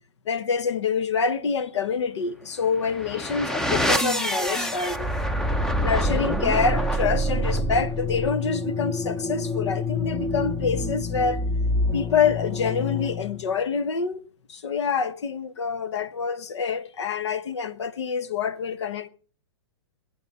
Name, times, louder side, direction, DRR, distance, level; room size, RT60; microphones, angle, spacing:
voice 1, 0.2-5.1 5.8-11.4 11.9-14.2 14.5-19.1, left 5 dB, 75° left, 1.3 m, -26 dB
sound 1, 2.7-13.5, left 1 dB, 5° left, 0.6 m, -26 dB
23.5 x 9.2 x 4.3 m
hypercardioid pair, 145°, 15 cm